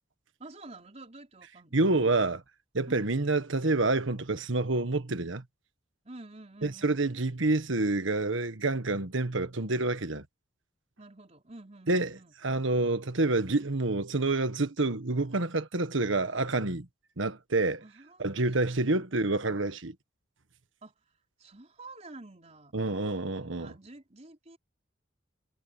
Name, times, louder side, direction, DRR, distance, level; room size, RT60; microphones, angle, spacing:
voice 1, 0.4-1.9 2.9-3.2 6.0-7.0 11.0-12.3 17.8-19.3 20.8-21.1 21.4-23.2 23.6-24.6, right 2 dB, 35° right, 4.3 m, -49 dB
voice 2, 1.7-2.4 2.7-5.4 6.6-10.2 11.9-16.9 17.2-17.8 18.2-19.9 22.7-23.7, right 2 dB, 75° right, 1.5 m, -28 dB
head